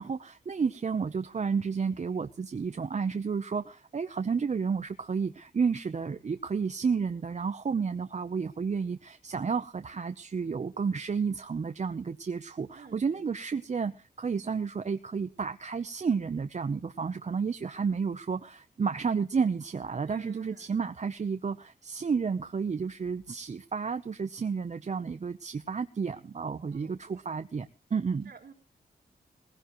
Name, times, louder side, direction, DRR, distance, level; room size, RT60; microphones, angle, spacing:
voice 1, 0.0-13.9 14.2-28.3, right 5 dB, 40° right, 9 dB, 0.7 m, -31 dB
voice 2, 12.7-13.2 20.1-20.9 26.7-27.3 28.3-28.5, right 5 dB, 60° right, 2 dB, 3.7 m, -52 dB
20.0 x 16.5 x 3.1 m, 0.36 s
wide cardioid pair, 130°, 17 cm